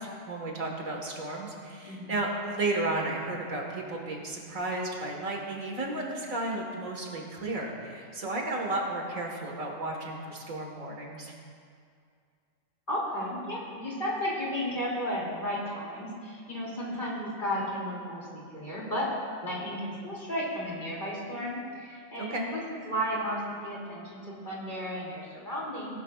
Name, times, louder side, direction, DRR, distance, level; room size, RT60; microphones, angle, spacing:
voice 1, 0.0-11.3 22.2-22.4, right 2 dB, 85° right, 0 dB, 2.0 m, -33 dB
voice 2, 1.8-2.2 12.9-19.1 19.4-26.0, equal, 35° left, -5 dB, 2.9 m, -34 dB
18.5 x 12.0 x 2.4 m, 2.3 s
omnidirectional pair, 1.4 m